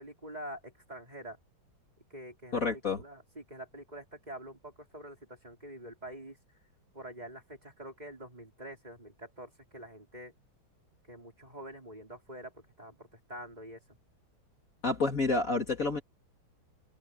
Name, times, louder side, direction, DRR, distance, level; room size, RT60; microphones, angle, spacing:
voice 1, 0.0-1.4 2.1-6.4 6.9-10.3 11.0-13.8, right 1 dB, 20° right, 5.4 m, -46 dB
voice 2, 2.5-3.0 14.8-16.0, left 3 dB, 40° left, 2.8 m, -29 dB
open air
omnidirectional pair, 2.3 m